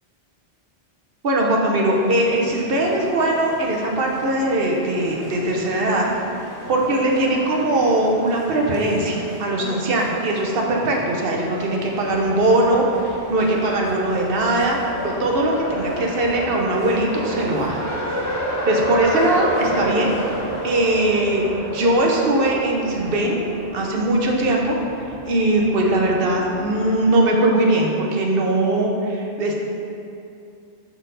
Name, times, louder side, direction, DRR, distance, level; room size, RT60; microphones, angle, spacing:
voice 1, 1.2-6.1 6.7-17.8 18.6-20.4 20.6-23.4 23.7-24.7 25.2-29.6, right 1 dB, 60° right, -1 dB, 1.0 m, -20 dB
sound 1, 1.9-20.9, equal, 20° right, 0.9 m, -37 dB
Race car auto racing, 12.1-27.0, equal, 25° left, 0.4 m, -30 dB
6.1 x 4.3 x 3.9 m, 2.6 s
omnidirectional pair, 1.1 m